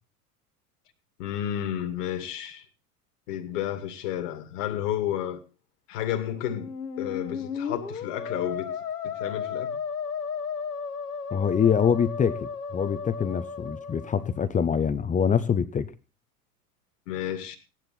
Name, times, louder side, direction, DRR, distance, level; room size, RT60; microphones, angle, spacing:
voice 1, 1.2-2.6 3.3-5.4 5.9-8.8 9.0-9.8 17.1-17.6, left 11 dB, 55° left, 2.4 m, -31 dB
Musical instrument, 6.4-14.4, left 6 dB, 75° left, 2.1 m, -34 dB
voice 2, 11.3-15.9, left 7 dB, 15° left, 0.9 m, -25 dB
17.0 x 10.5 x 4.2 m
figure-of-eight pair, 90°, 46 cm